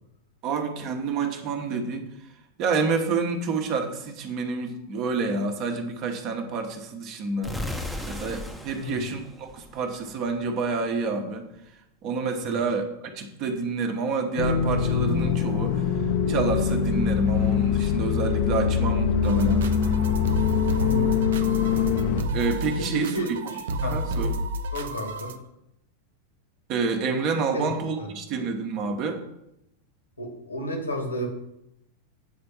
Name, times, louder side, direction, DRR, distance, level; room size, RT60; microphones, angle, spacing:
voice 1, 0.4-2.1 2.6-7.5 8.1-11.4 12.0-15.8 16.3-19.6 22.3-23.2 23.8-24.3 26.7-29.2, right 4 dB, 40° right, 4 dB, 1.2 m, -28 dB
sound 1, 7.4-10.3, left 1 dB, ahead, 0.9 m, -36 dB
sound 2, 14.4-22.2, left 7 dB, 50° left, 0.8 m, -23 dB
sound 3, 19.2-25.4, equal, 60° right, 0.6 m, -31 dB
voice 2, 20.7-21.2 22.8-24.0 24.7-25.3 27.5-27.7 28.0-28.1 30.2-31.3, equal, 80° left, 2 dB, 2.1 m, -32 dB
8.4 x 4.4 x 7.0 m, 0.84 s
figure-of-eight pair, 90°, 0 cm